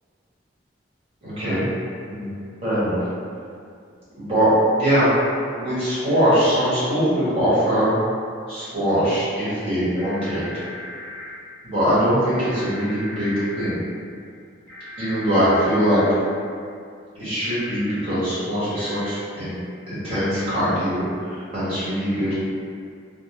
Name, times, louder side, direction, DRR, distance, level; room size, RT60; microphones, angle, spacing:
voice 1, 1.2-1.6 2.1-2.3 2.6-3.0 4.2-5.1 5.6-7.9 8.5-10.5 11.6-13.8 15.0-16.0 17.1-19.5 19.9-22.3, equal, 30° right, -12 dB, 1.3 m, -22 dB
sound 1, 9.9-11.3 12.3-13.7 14.7-16.0 17.4-17.8 18.7-19.1 20.1-20.4, left 1 dB, 5° left, 1.5 m, -38 dB
3.4 x 2.2 x 2.9 m, 2.3 s
head